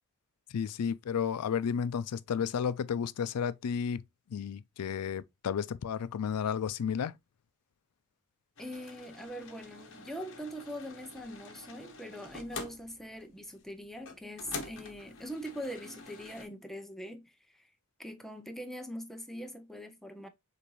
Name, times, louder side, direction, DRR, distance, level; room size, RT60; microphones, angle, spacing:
voice 1, 0.5-4.0 4.3-7.1, left 7 dB, 90° left, 0.4 m, -32 dB
sound 1, 8.6-16.5, left 3 dB, 60° left, 1.1 m, -47 dB
voice 2, 8.6-17.7 18.0-20.3, equal, ahead, 0.6 m, -42 dB
6.6 x 2.6 x 3.0 m
head